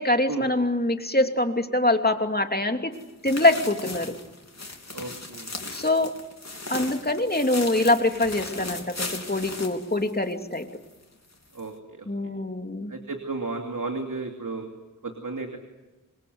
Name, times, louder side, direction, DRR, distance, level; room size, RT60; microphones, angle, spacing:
voice 1, 0.0-2.9 3.2-4.2 5.7-6.1 6.7-10.7 12.1-12.9, left 2 dB, 30° left, 5 dB, 2.9 m, -24 dB
sound 1, 2.9-10.6 10.9-11.0 11.6-11.7, left 2 dB, 55° left, 3.6 m, -37 dB
voice 2, 4.9-5.5 11.5-12.1 12.9-14.7 15.0-15.6, right 3 dB, 75° right, 3 dB, 2.9 m, -33 dB
27.5 x 22.5 x 8.0 m, 1.1 s
wide cardioid pair, 40°, 32 cm